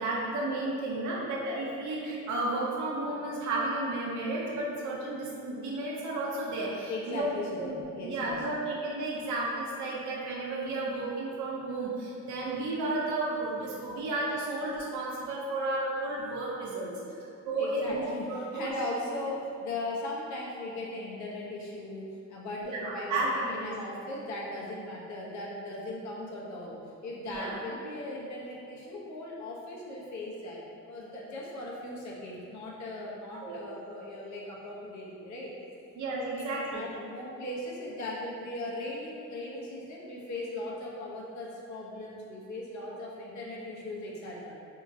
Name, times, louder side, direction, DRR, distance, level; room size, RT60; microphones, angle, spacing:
voice 1, 0.0-7.3 7.6-16.9 17.2-18.7 22.6-23.7 27.2-27.5 33.4-33.6 36.0-36.8, right 2 dB, 70° right, -4 dB, 0.7 m, -33 dB
voice 2, 6.9-8.4 17.6-26.8 27.0-35.5 36.3-44.5, left 1 dB, 70° left, -4 dB, 0.8 m, -38 dB
3.8 x 2.8 x 2.6 m, 2.5 s
cardioid pair, 90°, 30 cm